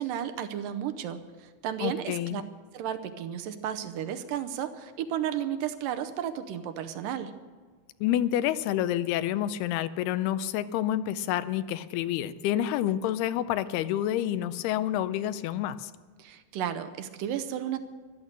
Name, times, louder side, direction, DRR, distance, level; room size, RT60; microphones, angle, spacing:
voice 1, 0.0-2.4 2.7-7.3 16.2-17.8, right 10 dB, 75° right, 9 dB, 2.1 m, -33 dB
voice 2, 1.8-2.4 8.0-15.9, left 12 dB, 85° left, 13 dB, 2.6 m, -28 dB
15.0 x 12.0 x 6.7 m, 1.5 s
omnidirectional pair, 4.5 m